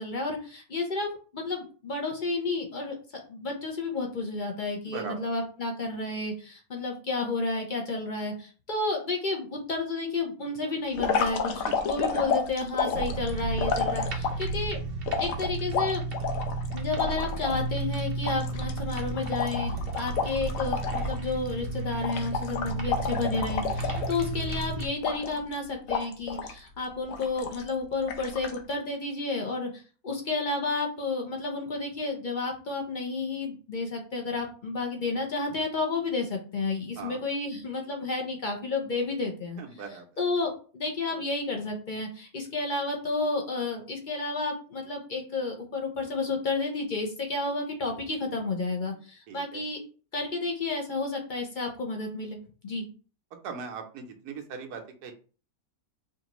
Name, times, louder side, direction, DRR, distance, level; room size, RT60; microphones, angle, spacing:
voice 1, 0.0-14.8 15.2-16.0 16.7-49.8 50.1-52.8, left 3 dB, 45° left, 1 dB, 0.7 m, -31 dB
sound 1, 11.0-14.5 15.1-17.6 17.9-18.0 18.3-21.2 21.5-21.7 22.0-24.5 25.0-25.5 25.9-26.6 27.1-27.7 28.1-28.6, left 5 dB, 70° left, 1.0 m, -30 dB
sound 2, 12.9-24.9, right 3 dB, 50° right, 0.7 m, -33 dB
voice 2, 39.6-40.1 49.3-49.6 53.4-55.1, right 6 dB, 90° right, 3 dB, 1.3 m, -39 dB
4.9 x 2.5 x 3.0 m, 0.38 s
omnidirectional pair, 1.6 m